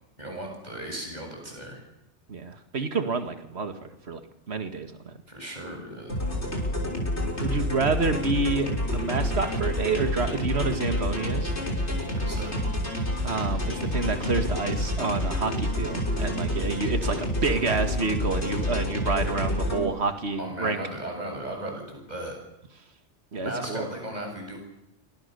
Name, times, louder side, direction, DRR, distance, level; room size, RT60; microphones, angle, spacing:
voice 1, 0.2-1.8 5.3-6.2 12.1-12.6 20.4-22.4 23.4-24.6, right 1 dB, 40° right, 2 dB, 8.2 m, -36 dB
voice 2, 2.3-4.2 4.5-5.1 7.4-11.5 13.2-20.8 23.3-23.9, right 4 dB, 70° right, 7 dB, 2.2 m, -28 dB
sound 1, 6.1-19.8, left 1 dB, 75° left, 6.3 m, -28 dB
28.0 x 25.0 x 6.9 m, 0.84 s
omnidirectional pair, 1.2 m